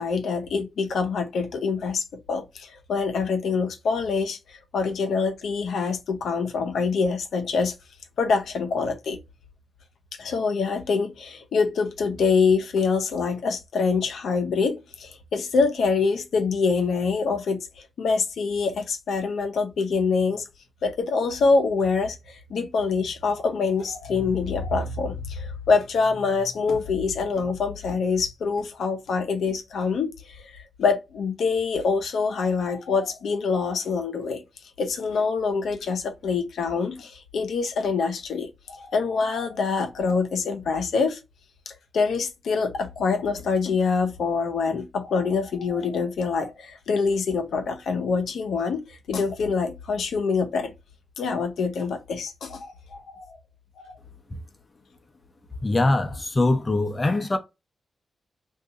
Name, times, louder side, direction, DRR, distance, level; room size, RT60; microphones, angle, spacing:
voice 1, 0.0-7.7 8.2-9.2 10.2-20.4 20.8-34.4 34.8-41.2 41.7-50.7 51.2-53.4 53.8-54.0, left 4 dB, 80° left, 0.6 m, -25 dB
voice 2, 55.6-57.4, left 2 dB, 35° left, 0.6 m, -22 dB
2.7 x 2.3 x 3.8 m
supercardioid pair, 45°, 0 cm